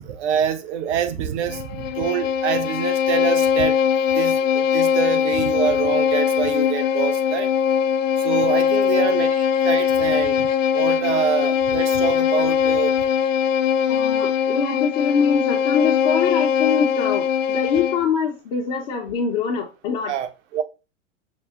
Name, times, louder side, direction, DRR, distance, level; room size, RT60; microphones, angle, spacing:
voice 1, 0.0-3.8 4.1-7.5 8.2-10.5 10.7-12.9 13.8-14.0 20.1-20.6, right 8 dB, 60° right, 0.8 m, -26 dB
Bowed string instrument, 1.5-18.1, left 8 dB, 75° left, 0.5 m, -21 dB
voice 2, 8.9-9.2 13.9-20.2, left 6 dB, 45° left, 0.8 m, -24 dB
5.5 x 2.0 x 3.6 m
hypercardioid pair, 100°, 39 cm